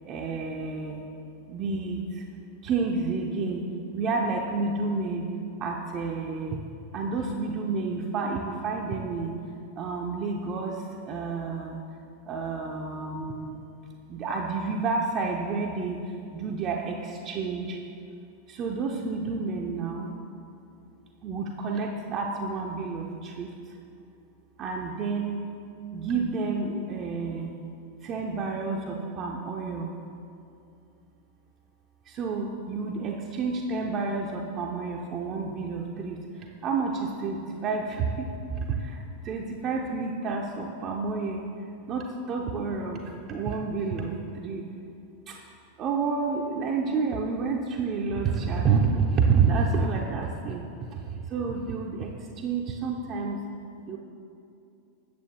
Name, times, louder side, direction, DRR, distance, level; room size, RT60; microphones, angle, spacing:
voice 1, 0.0-1.0 1.5-2.2 2.6-3.6 3.9-5.3 5.6-6.6 6.9-9.3 9.8-11.8 12.3-13.6 14.1-16.0 16.3-17.8 18.5-20.1 21.2-23.5 24.6-25.4 25.9-27.5 28.0-29.9 32.1-36.2 36.6-41.4 41.9-43.0 43.3-44.6 45.3-45.4 45.8-50.6 51.3-53.4 53.9-54.0, right 4 dB, 35° right, 0 dB, 0.5 m, -29 dB
8.5 x 6.8 x 3.1 m, 2.6 s
figure-of-eight pair, 90°, 0 cm